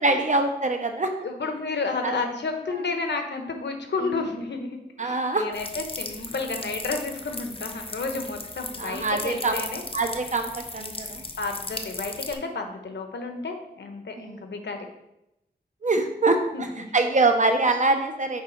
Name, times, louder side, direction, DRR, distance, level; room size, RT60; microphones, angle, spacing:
voice 1, 0.0-1.1 2.0-2.2 5.0-5.5 8.8-9.5 9.9-11.2 14.2-14.4 15.8-16.7 16.9-18.4, right 3 dB, 45° right, 5 dB, 0.9 m, -24 dB
voice 2, 1.2-9.8 11.4-14.8 16.5-16.9, left 3 dB, 80° left, 5 dB, 1.0 m, -31 dB
sound 1, 5.5-12.3, left 3 dB, 30° left, 0.7 m, -37 dB
6.7 x 4.9 x 4.6 m, 0.88 s
wide cardioid pair, 95°, 18 cm